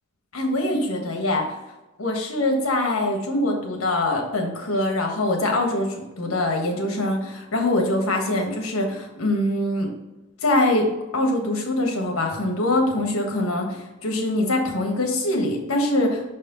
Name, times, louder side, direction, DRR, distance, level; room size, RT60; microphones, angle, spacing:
voice 1, 0.3-1.5 2.0-9.9 10.4-10.9 11.1-16.2, left 1 dB, 85° left, 2 dB, 1.4 m, -23 dB
6.3 x 4.3 x 3.9 m, 1.0 s
head